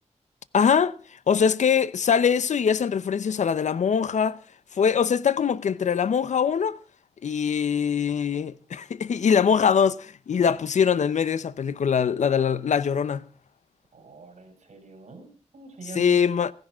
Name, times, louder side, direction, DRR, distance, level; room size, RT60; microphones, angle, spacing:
voice 1, 0.5-1.0 1.3-4.4 4.7-6.8 7.2-13.2 15.9-16.5, left 7 dB, 75° left, 0.7 m, -22 dB
voice 2, 13.9-16.2, right 4 dB, 75° right, 4.9 m, -43 dB
15.5 x 10.5 x 6.1 m
wide cardioid pair, 110°, 12 cm